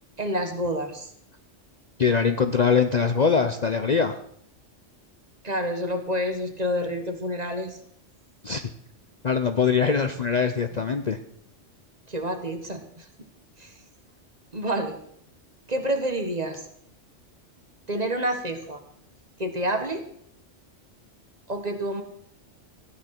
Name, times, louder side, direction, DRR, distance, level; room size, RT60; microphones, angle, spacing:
voice 1, 0.2-1.1 5.4-7.8 12.1-13.0 13.6-13.7 14.5-15.0 15.7-16.6 17.9-18.8 19.4-20.0 21.5-22.0, equal, 35° right, 6 dB, 1.7 m, -28 dB
voice 2, 2.0-4.2 8.4-8.6 9.2-11.2, left 6 dB, 40° left, 8 dB, 0.7 m, -22 dB
14.5 x 9.4 x 6.0 m, 0.66 s
omnidirectional pair, 1.2 m